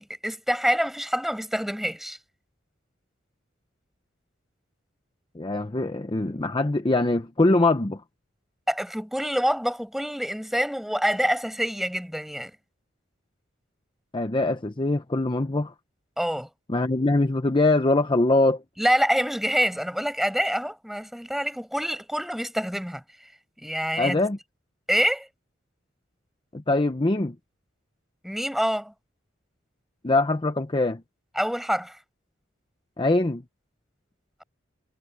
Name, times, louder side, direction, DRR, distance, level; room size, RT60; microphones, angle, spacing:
voice 1, 0.0-2.2 8.7-12.5 16.2-16.5 18.8-23.0 23.6-24.2 24.9-25.3 28.2-28.9 31.3-32.0, equal, ahead, 5.8 m, -26 dB
voice 2, 5.3-8.0 14.1-15.7 16.7-18.6 24.0-24.4 26.5-27.4 30.0-31.0 33.0-33.4, left 2 dB, 25° left, 0.8 m, -23 dB
head